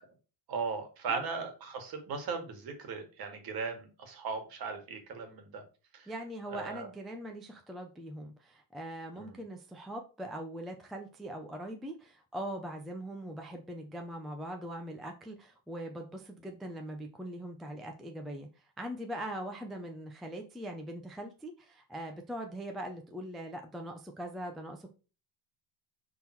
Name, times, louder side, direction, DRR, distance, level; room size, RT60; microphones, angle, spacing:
voice 1, 0.5-5.6 5.9-6.1 6.5-6.9 9.2-9.4, right 5 dB, 50° right, 6 dB, 1.8 m, -38 dB
voice 2, 6.1-18.5 18.8-24.9, right 1 dB, ahead, 3 dB, 0.4 m, -41 dB
5.9 x 3.8 x 4.4 m, 0.34 s
cardioid pair, 170°, 47 cm